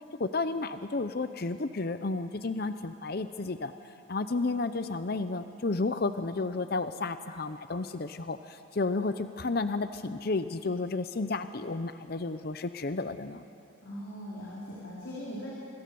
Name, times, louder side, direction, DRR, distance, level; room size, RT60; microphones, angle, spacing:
voice 1, 0.2-3.7 4.1-13.4, left 3 dB, 50° left, 10 dB, 0.6 m, -32 dB
voice 2, 13.8-15.5, equal, 70° left, -7 dB, 4.6 m, -40 dB
26.0 x 21.0 x 7.0 m, 2.6 s
head